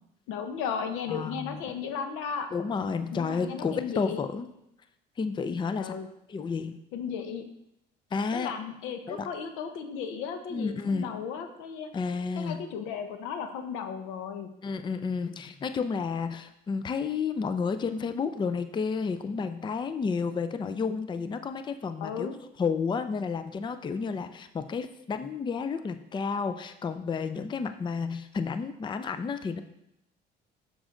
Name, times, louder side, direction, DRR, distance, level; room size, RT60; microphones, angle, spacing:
voice 1, 0.3-2.5 3.1-4.2 5.8-6.1 6.9-7.4 8.3-11.9 12.4-14.5 22.0-22.3, left 6 dB, 85° left, 8 dB, 0.9 m, -35 dB
voice 2, 1.1-1.6 2.5-4.5 5.2-5.9 6.3-6.8 8.1-8.5 9.1-9.3 10.5-11.2 11.9-12.6 14.6-22.3 22.6-29.6, left 5 dB, 25° left, 10 dB, 0.5 m, -31 dB
7.1 x 6.2 x 3.8 m, 0.81 s
cardioid pair, 100°, 20 cm